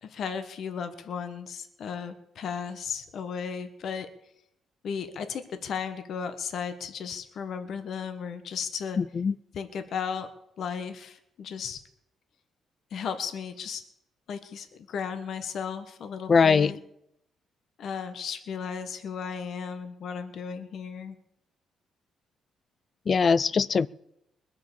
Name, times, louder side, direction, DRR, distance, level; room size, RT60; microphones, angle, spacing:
voice 1, 0.0-4.1 4.8-9.0 9.5-10.3 10.6-11.8 12.9-13.8 14.3-16.8 17.8-21.2, left 6 dB, 65° left, 1.2 m, -35 dB
voice 2, 9.0-9.3 16.3-16.7 23.1-23.9, left 5 dB, 40° left, 0.5 m, -21 dB
21.0 x 7.7 x 7.0 m
cardioid pair, 90°, 0 cm